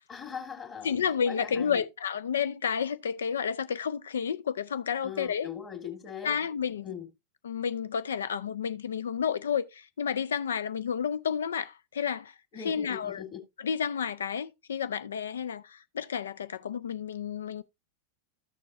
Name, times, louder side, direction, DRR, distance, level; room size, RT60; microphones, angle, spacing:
voice 1, 0.1-0.9 1.3-1.8 5.0-6.3 6.8-7.1 12.5-13.4, left 7 dB, 25° left, 2.1 m, -40 dB
voice 2, 0.8-5.5 6.2-6.9 7.4-12.3 12.6-13.2 13.6-17.6, left 7 dB, 65° left, 0.4 m, -31 dB
13.5 x 6.8 x 2.6 m
figure-of-eight pair, 90°, 0 cm